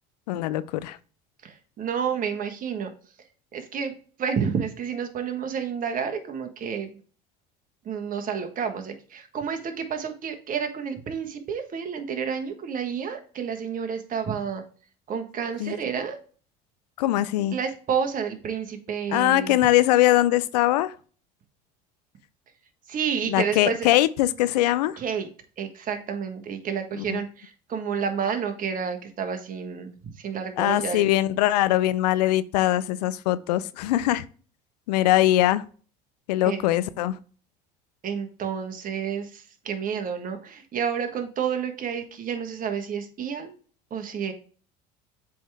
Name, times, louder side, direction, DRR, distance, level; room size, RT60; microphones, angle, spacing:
voice 1, 0.3-1.0 15.6-15.7 17.0-17.6 19.1-20.9 23.3-25.0 27.1-27.2 30.6-34.3 34.9-35.6 36.3-37.2, left 15 dB, 85° left, 0.5 m, -22 dB
voice 2, 1.4-2.9 3.5-7.0 7.8-14.6 15.1-16.2 17.5-19.6 22.9-23.9 25.0-25.3 25.6-31.1 36.4-36.7 38.0-43.5 43.9-44.3, right 7 dB, 45° right, 1.4 m, -30 dB
7.7 x 3.6 x 3.5 m
hypercardioid pair, 80°, 20 cm